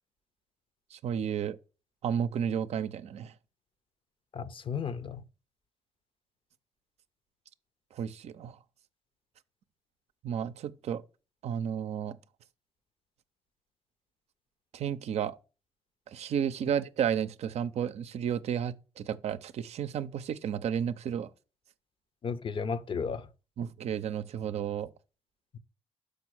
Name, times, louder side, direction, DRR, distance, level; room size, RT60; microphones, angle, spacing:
voice 1, 0.9-1.6 2.0-3.3 7.9-8.6 10.2-11.0 11.4-12.2 14.7-15.4 16.1-21.3 23.6-24.9, right 8 dB, 70° right, 0.6 m, -32 dB
voice 2, 4.3-5.2 22.2-23.3, left 6 dB, 50° left, 0.7 m, -34 dB
6.2 x 5.1 x 6.1 m
supercardioid pair, 50°, 12 cm